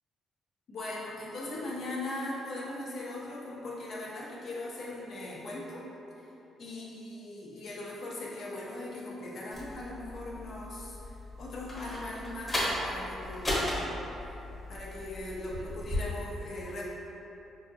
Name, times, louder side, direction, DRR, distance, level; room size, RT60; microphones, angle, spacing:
voice 1, 0.7-5.8 6.2-6.3 6.6-13.9 14.7-16.8, left 2 dB, 50° left, -5 dB, 0.7 m, -39 dB
sound 1, 9.5-16.0, left 1 dB, 15° left, 1.2 m, -36 dB
5.7 x 2.5 x 2.7 m, 3.0 s
cardioid pair, 160°, 0 cm